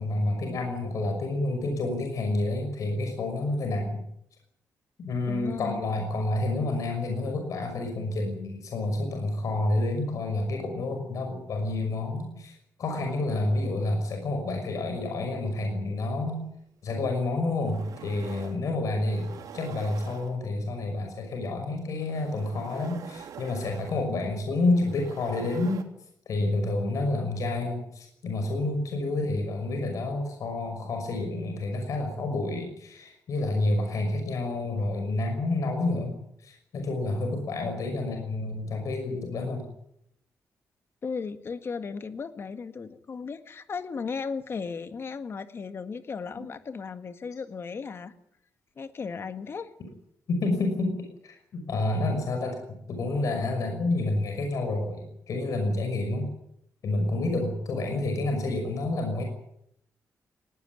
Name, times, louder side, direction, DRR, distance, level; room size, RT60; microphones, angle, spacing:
voice 1, 0.0-4.0 5.0-16.4 16.8-19.3 19.5-25.8 26.3-36.2 36.4-39.6 49.8-49.9 50.3-56.3 56.8-59.2, left 2 dB, 65° left, 4 dB, 6.0 m, -29 dB
voice 2, 5.3-5.8 41.0-48.1 48.8-49.7, left 5 dB, 40° left, 10 dB, 1.7 m, -36 dB
sound 1, 17.0-17.1 17.5-18.6 19.0-20.7 21.8-25.8, right 8 dB, 85° right, 3.2 m, -46 dB
20.0 x 18.0 x 9.6 m, 0.75 s
wide cardioid pair, 135°, 6 cm